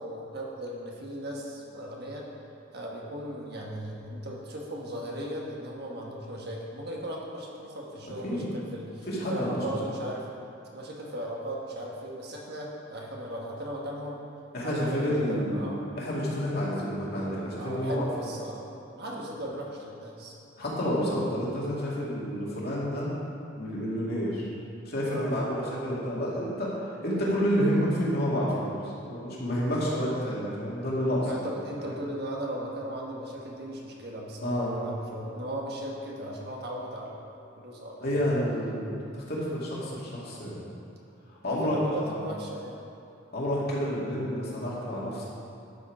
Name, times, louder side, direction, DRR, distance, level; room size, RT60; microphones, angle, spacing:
voice 1, 0.0-2.3 2.7-10.3 10.7-14.2 14.6-15.9 17.6-18.7 18.9-20.3 25.0-25.3 29.6-30.0 31.2-37.2 37.6-38.3 41.4-42.8, right 1 dB, 55° right, -2 dB, 1.5 m, -37 dB
voice 2, 8.0-8.5 9.1-9.6 14.5-18.1 20.6-23.1 23.6-24.5 24.9-31.3 31.8-32.0 34.4-34.8 38.0-39.0 39.3-40.6 41.4-42.2 43.3-45.3, equal, 50° left, -6 dB, 2.4 m, -29 dB
11.5 x 6.4 x 4.9 m, 2.8 s
head